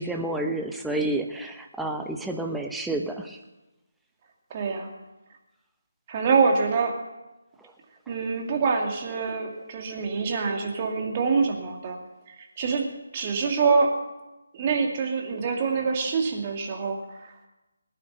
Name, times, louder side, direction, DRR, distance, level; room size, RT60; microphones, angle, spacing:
voice 1, 0.0-3.4, right 2 dB, 5° right, 3 dB, 0.8 m, -30 dB
voice 2, 4.5-4.9 6.1-7.0 8.1-12.0 12.3-12.9 13.1-13.9 14.5-17.3, right 5 dB, 30° right, 2 dB, 2.2 m, -25 dB
20.0 x 9.2 x 6.6 m, 1.0 s
figure-of-eight pair, 150°, 0 cm